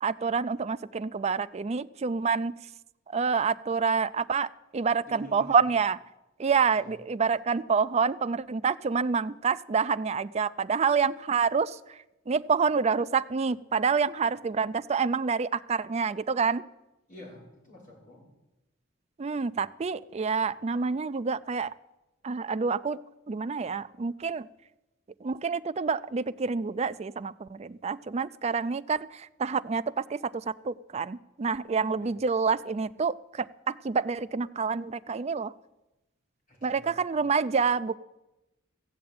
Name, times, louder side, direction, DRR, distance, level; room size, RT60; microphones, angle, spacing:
voice 1, 0.0-2.5 3.1-6.0 6.4-16.6 19.2-21.7 22.2-23.0 23.3-24.5 25.2-35.5 36.6-38.0, right 5 dB, 30° right, 14 dB, 0.4 m, -28 dB
voice 2, 5.1-5.6 6.8-6.9 17.1-18.2 32.0-32.1 36.5-36.9, left 1 dB, 40° left, -4 dB, 5.6 m, -48 dB
15.5 x 7.6 x 8.7 m, 0.98 s
head